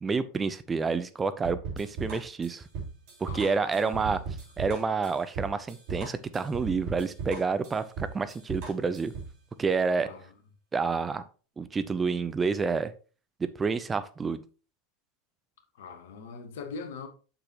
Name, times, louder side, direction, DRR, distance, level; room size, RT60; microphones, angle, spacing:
voice 1, 0.0-2.6 3.2-4.2 4.6-9.1 9.6-10.1 10.7-11.2 11.6-12.9 13.4-14.4, right 4 dB, 20° right, 0.6 m, -29 dB
sound 1, 1.4-9.4, right 5 dB, 50° right, 3.4 m, -37 dB
voice 2, 3.3-4.2 10.0-10.2 15.8-17.1, left 5 dB, 60° left, 1.2 m, -42 dB
7.3 x 6.9 x 3.0 m
figure-of-eight pair, 85°, 0 cm